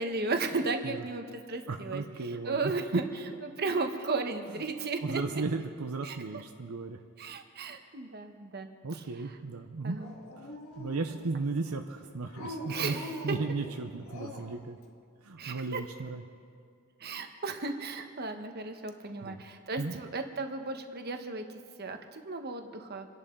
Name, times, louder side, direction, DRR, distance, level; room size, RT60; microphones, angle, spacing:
voice 1, 0.0-3.1 3.4-5.4 6.0-6.2 7.2-9.0 9.8-10.1 12.7-13.4 15.4-15.8 17.0-21.4 21.8-23.1, right 3 dB, 45° right, 6 dB, 1.1 m, -35 dB
voice 2, 1.7-2.7 5.0-7.0 8.8-10.0 10.4-13.0 13.2-14.8 15.2-16.2 19.2-19.4 19.8-19.9, right 3 dB, 80° right, 5 dB, 0.7 m, -35 dB
Dog, 10.0-11.5 12.3-14.6, left 1 dB, 65° left, 1.7 m, -43 dB
28.0 x 11.0 x 3.8 m, 2.2 s
head